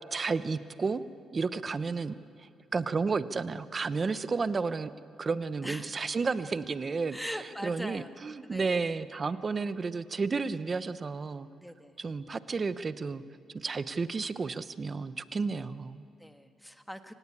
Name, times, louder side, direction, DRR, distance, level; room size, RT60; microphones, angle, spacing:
voice 1, 0.1-1.0 1.3-2.2 2.7-4.9 5.2-7.2 7.6-11.5 12.0-13.2 13.5-16.0, right 4 dB, 35° right, 13 dB, 0.9 m, -32 dB
voice 2, 5.6-6.0 7.1-8.1 8.4-8.8 11.6-12.0 16.2-17.1, equal, ahead, 7 dB, 1.5 m, -41 dB
25.5 x 18.5 x 8.5 m, 2.4 s
cardioid pair, 90°, 0 cm